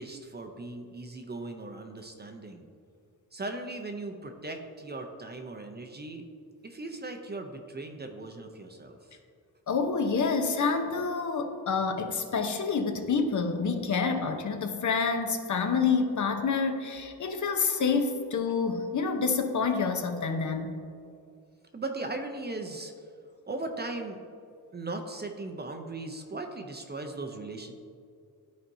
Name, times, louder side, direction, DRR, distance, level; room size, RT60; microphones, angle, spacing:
voice 1, 0.0-2.7 3.3-6.2 6.6-9.0 21.7-22.9 23.5-24.2 24.7-27.7, right 2 dB, 25° right, 4 dB, 0.6 m, -38 dB
voice 2, 9.7-20.8, left 5 dB, 45° left, 5 dB, 0.7 m, -28 dB
12.5 x 4.3 x 2.7 m, 2.3 s
cardioid pair, 95°, 40 cm